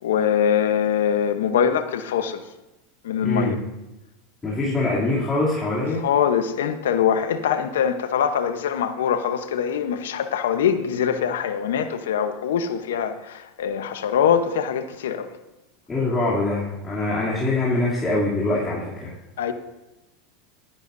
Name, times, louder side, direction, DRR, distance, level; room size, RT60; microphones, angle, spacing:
voice 1, 0.0-2.4 3.0-3.6 6.0-15.3 19.4-19.5, left 8 dB, 90° left, 10 dB, 0.8 m, -23 dB
voice 2, 3.2-3.6 4.4-6.1 15.9-19.1, left 2 dB, 20° left, -9 dB, 2.7 m, -23 dB
17.5 x 10.5 x 2.6 m, 1.0 s
supercardioid pair, 120°, 0 cm